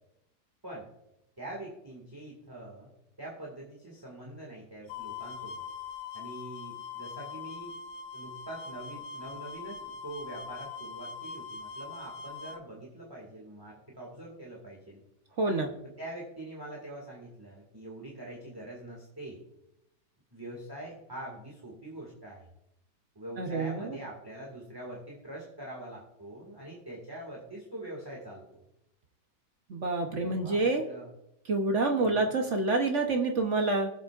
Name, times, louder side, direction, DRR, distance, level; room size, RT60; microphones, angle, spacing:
voice 1, 1.4-2.9 3.2-5.6 6.1-7.7 8.1-15.0 16.0-19.4 20.3-22.5 23.2-28.4 30.1-31.1 32.0-32.4, right 1 dB, 10° right, -3 dB, 1.9 m, -44 dB
sound 1, 4.9-12.6, left 5 dB, 75° left, 1.4 m, -42 dB
voice 2, 15.4-15.7 23.4-24.0 29.7-30.8 31.5-33.9, right 3 dB, 45° right, 4 dB, 1.1 m, -27 dB
20.5 x 7.9 x 2.5 m, 0.83 s
omnidirectional pair, 2.0 m